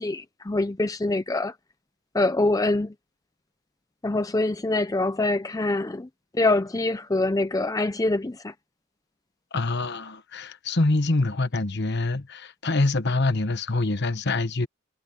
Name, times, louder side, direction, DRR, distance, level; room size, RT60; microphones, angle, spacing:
voice 1, 0.0-1.5 2.1-2.9 4.0-6.1 6.3-8.5, left 2 dB, 15° left, 0.4 m, -24 dB
voice 2, 9.5-14.7, left 2 dB, 50° left, 1.2 m, -25 dB
head